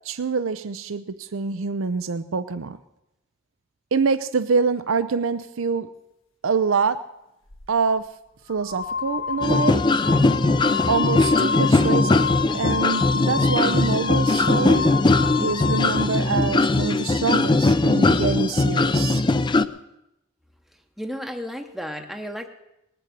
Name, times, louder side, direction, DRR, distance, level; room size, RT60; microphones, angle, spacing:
voice 1, 0.1-2.8 3.9-5.9 6.4-7.0 7.7-8.1 8.5-9.8 10.9-12.2 12.5-14.8 15.4-19.2, right 5 dB, 80° right, 13 dB, 0.6 m, -25 dB
sound 1, 7.5-7.7 8.5-16.2, left 6 dB, 75° left, 1.7 m, -29 dB
sound 2, 9.4-19.6, left 2 dB, 20° left, 0.4 m, -20 dB
voice 2, 21.0-22.5, equal, ahead, 3 dB, 0.8 m, -33 dB
19.5 x 6.9 x 9.2 m, 0.88 s
head